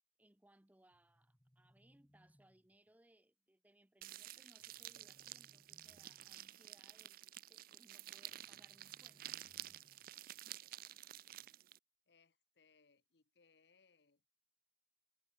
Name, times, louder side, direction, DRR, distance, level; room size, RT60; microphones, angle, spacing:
voice 1, 0.2-7.2 7.5-9.3, right 1 dB, 10° right, 0.6 m, -70 dB
sound 1, 0.9-2.9 4.6-6.5 8.3-10.3, equal, 10° left, 2.1 m, -72 dB
sound 2, 4.0-11.8, right 14 dB, 50° right, 0.4 m, -52 dB
voice 2, 10.1-11.6 12.1-14.2, left 5 dB, 65° left, 1.0 m, -74 dB
head